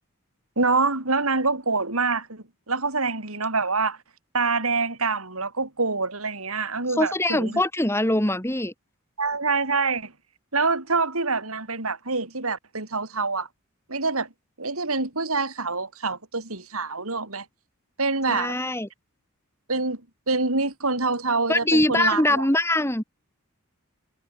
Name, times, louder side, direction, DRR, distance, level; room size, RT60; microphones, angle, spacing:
voice 1, 0.6-4.0 4.3-7.6 9.2-10.1 10.5-13.5 13.9-14.3 14.6-17.5 18.0-18.6 19.7-20.0 20.3-22.5, right 3 dB, 85° right, 5.0 m, -26 dB
voice 2, 7.0-8.7 18.3-18.9 21.5-23.0, left 1 dB, 10° left, 2.8 m, -22 dB
head